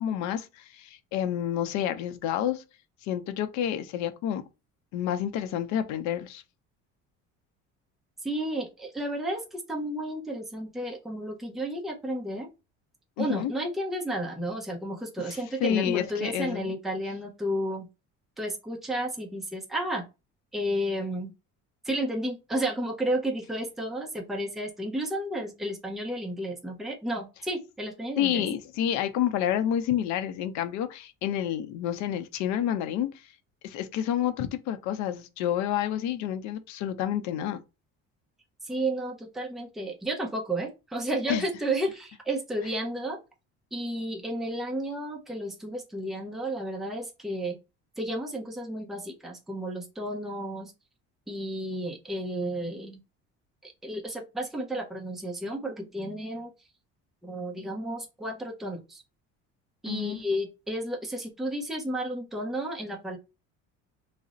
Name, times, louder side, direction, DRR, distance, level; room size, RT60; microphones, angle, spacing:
voice 1, 0.0-2.6 3.0-4.4 4.9-6.4 13.2-13.5 15.3-16.7 28.2-33.1 33.6-37.6 41.3-41.4 59.9-60.2, left 10 dB, 75° left, 0.5 m, -29 dB
voice 2, 8.2-12.5 13.2-17.9 18.4-20.0 20.5-21.3 21.8-28.5 38.6-43.2 43.7-47.6 48.0-50.7 51.3-53.0 53.6-56.5 57.2-59.0 59.8-63.2, right 1 dB, ahead, 0.5 m, -32 dB
2.4 x 2.0 x 3.8 m
cardioid pair, 145°, 29 cm